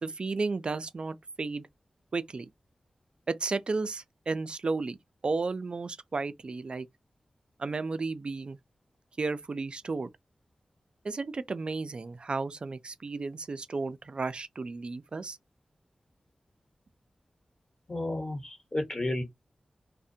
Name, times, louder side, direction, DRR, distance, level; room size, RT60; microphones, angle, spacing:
voice 1, 0.0-1.7 2.1-2.5 3.3-5.0 5.2-6.9 7.6-8.6 9.2-10.1 11.0-15.4, right 3 dB, 50° right, 0.3 m, -33 dB
voice 2, 17.9-19.2, left 1 dB, 35° left, 1.1 m, -32 dB
2.5 x 2.1 x 2.6 m
wide cardioid pair, 70°, 2 cm